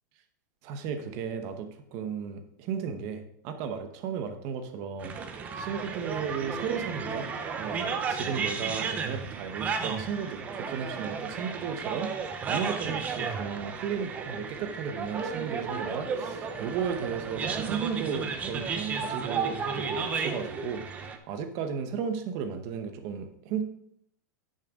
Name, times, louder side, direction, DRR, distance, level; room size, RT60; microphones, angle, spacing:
voice 1, 0.6-5.2 5.6-7.3 7.6-12.1 12.4-20.8 21.3-23.6, right 7 dB, 35° right, 7 dB, 0.9 m, -34 dB
sound 1, 5.0-21.2, right 5 dB, 15° right, 0.5 m, -33 dB
10.0 x 6.6 x 3.6 m, 0.70 s
supercardioid pair, 175°, 10 cm